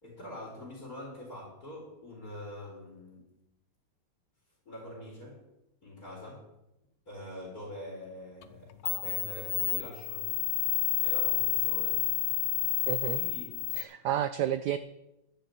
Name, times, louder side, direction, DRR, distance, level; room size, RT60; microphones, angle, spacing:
voice 1, 0.0-3.3 4.7-5.4 5.8-6.5 7.1-10.4 11.0-12.0 13.2-13.8, left 1 dB, 45° left, -3 dB, 4.3 m, -44 dB
sound 1, 8.4-8.5 8.9-13.8, left 19 dB, 80° left, 1.5 m, -30 dB
voice 2, 12.9-13.2 13.8-14.8, right 11 dB, 75° right, 12 dB, 0.9 m, -30 dB
11.5 x 6.8 x 8.3 m, 0.89 s
omnidirectional pair, 2.3 m